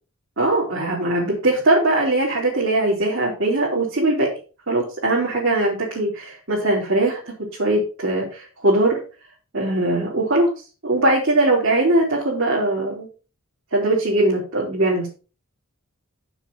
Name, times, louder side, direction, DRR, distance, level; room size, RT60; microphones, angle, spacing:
voice 1, 0.4-4.3 4.7-7.2 7.6-9.0 9.5-10.5 10.8-13.1 13.7-15.1, right 2 dB, 60° right, -5 dB, 3.5 m, -20 dB
7.5 x 7.0 x 5.4 m, 0.35 s
head